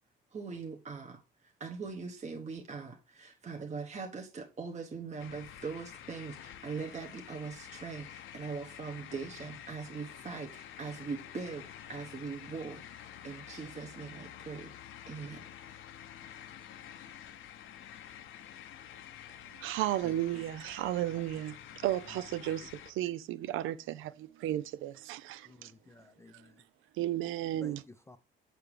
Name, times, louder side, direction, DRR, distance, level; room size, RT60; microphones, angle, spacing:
voice 1, 0.3-14.7 15.1-15.5, right 5 dB, 35° right, 1.0 m, -41 dB
sound 1, 5.2-22.9, left 10 dB, 80° left, 0.7 m, -49 dB
voice 2, 19.5-25.7 26.3-26.4 27.0-27.8, right 13 dB, 90° right, 0.5 m, -34 dB
voice 3, 25.5-26.6 27.6-28.2, left 3 dB, 15° left, 0.5 m, -52 dB
6.8 x 6.0 x 3.3 m
cardioid pair, 90°, 20 cm